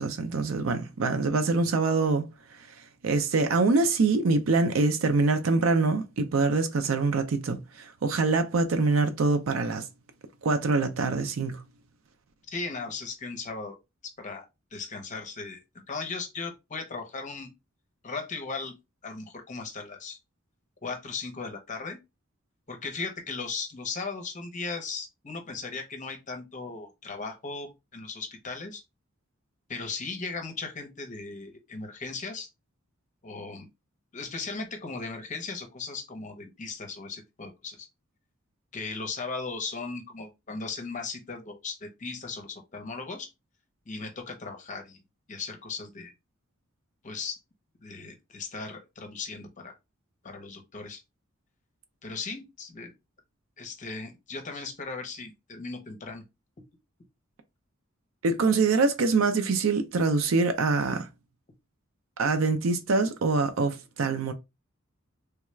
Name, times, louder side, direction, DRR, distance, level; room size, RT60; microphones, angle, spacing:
voice 1, 0.0-2.3 3.0-9.9 10.4-11.6 58.2-61.1 62.2-64.3, right 3 dB, 75° right, 0.5 m, -24 dB
voice 2, 12.5-13.8 14.0-14.4 14.7-15.6 15.9-17.5 18.0-18.7 19.0-20.2 20.8-22.0 22.7-28.8 29.7-32.5 33.2-33.7 34.1-37.9 38.7-43.3 43.9-45.0 45.3-46.1 47.0-47.4 47.8-49.8 50.2-51.0 52.0-52.9 53.6-56.2, left 4 dB, 35° left, 0.7 m, -37 dB
3.4 x 2.3 x 3.1 m
head